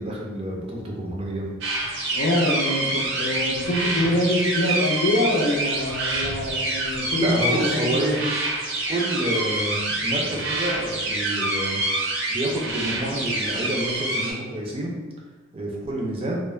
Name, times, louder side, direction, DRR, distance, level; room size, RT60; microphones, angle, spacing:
voice 1, 0.0-1.5 7.1-8.2 8.9-11.8 12.3-14.9 15.5-16.4, right 1 dB, 30° right, -2 dB, 0.4 m, -28 dB
sound 1, 1.6-14.3, right 2 dB, 70° right, 0.6 m, -27 dB
sound 2, 2.0-5.2, right 3 dB, 30° left, 0.5 m, -46 dB
voice 2, 2.1-8.3, left 1 dB, 80° left, 0 dB, 0.5 m, -24 dB
2.3 x 2.0 x 3.1 m, 1.3 s
head